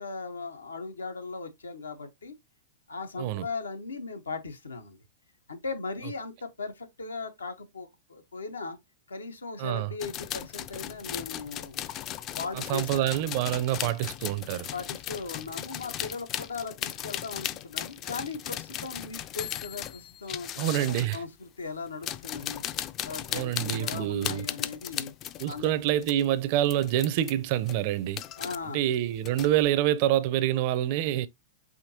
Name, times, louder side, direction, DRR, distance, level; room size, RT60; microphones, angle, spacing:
voice 1, 0.0-2.4 2.9-5.0 5.5-8.8 9.1-11.9 12.3-13.1 14.7-22.6 23.0-25.1 25.5-25.7 28.4-28.8, left 4 dB, 90° left, 1.0 m, -38 dB
sound 1, 10.0-21.2 21.9-26.3 26.6-27.3 27.6-28.6 28.9-29.7, left 11 dB, 35° left, 0.4 m, -37 dB
voice 2, 12.7-14.7 20.6-21.2 23.3-24.4 25.4-28.2 28.7-31.3, right 13 dB, 50° right, 0.5 m, -26 dB
5.0 x 2.8 x 2.7 m
hypercardioid pair, 115°, 0 cm